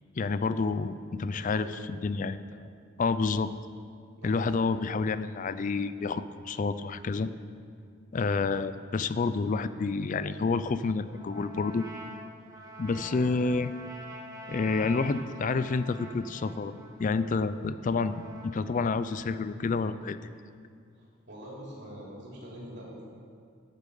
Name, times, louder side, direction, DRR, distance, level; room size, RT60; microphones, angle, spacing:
voice 1, 0.2-2.7 3.0-3.5 4.2-7.3 8.1-11.9 12.8-13.7 14.5-16.7 17.0-20.2, left 4 dB, 35° left, 13 dB, 0.3 m, -29 dB
voice 2, 1.3-1.7 4.2-4.6 13.0-13.1 20.9-23.0, equal, 55° right, -4 dB, 3.3 m, -44 dB
Trumpet, 11.1-19.2, right 1 dB, 15° right, 1.3 m, -46 dB
13.5 x 8.3 x 5.5 m, 2.2 s
head